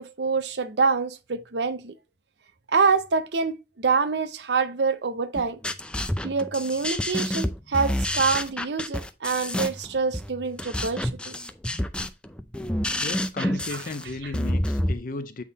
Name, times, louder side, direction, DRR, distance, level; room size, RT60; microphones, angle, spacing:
voice 1, 0.0-1.9 2.7-5.6 6.2-11.3 13.4-13.5, right 4 dB, 75° right, 0.7 m, -26 dB
sound 1, 5.4-14.9, left 1 dB, 5° left, 0.5 m, -28 dB
voice 2, 13.0-15.4, left 3 dB, 50° left, 0.6 m, -34 dB
8.4 x 3.7 x 4.0 m
head